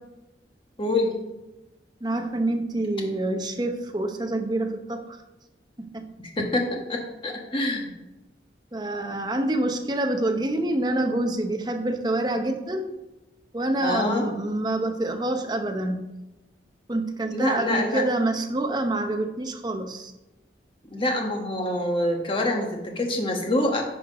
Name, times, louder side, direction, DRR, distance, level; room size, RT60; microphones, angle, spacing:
voice 1, 0.8-1.1 6.4-7.9 13.8-14.3 17.3-18.0 20.9-23.8, left 1 dB, 30° left, 1 dB, 1.3 m, -26 dB
voice 2, 2.0-5.2 5.8-6.0 8.7-12.9 13.5-16.0 16.9-20.1, right 1 dB, 25° right, 5 dB, 0.8 m, -26 dB
9.8 x 4.6 x 5.0 m, 1.0 s
head